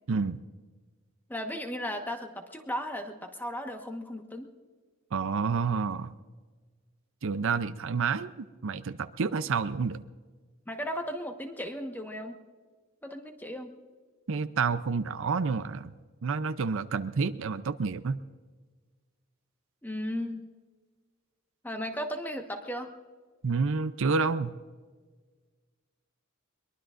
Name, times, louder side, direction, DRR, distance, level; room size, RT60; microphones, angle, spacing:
voice 1, 0.1-0.4 5.1-6.1 7.2-10.0 14.3-15.9 16.2-18.2 23.4-24.5, right 5 dB, 65° right, 12 dB, 0.6 m, -29 dB
voice 2, 1.3-4.5 10.7-12.4 13.0-13.7 19.8-20.4 21.6-22.9, equal, 10° left, 4 dB, 1.3 m, -36 dB
22.5 x 22.0 x 2.5 m, 1.4 s
head